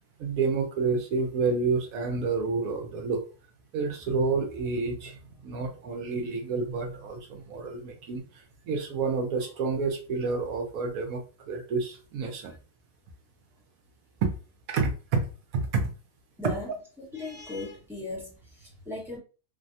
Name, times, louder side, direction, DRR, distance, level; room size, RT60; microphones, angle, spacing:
voice 1, 0.2-3.2 3.7-5.2 5.4-12.5 14.2-14.3 14.7-15.9 16.4-16.5, right 4 dB, 70° right, 3 dB, 1.0 m, -29 dB
voice 2, 16.4-16.7 17.1-19.2, left 2 dB, ahead, -4 dB, 0.8 m, -37 dB
3.2 x 2.2 x 2.6 m, 0.35 s
omnidirectional pair, 1.7 m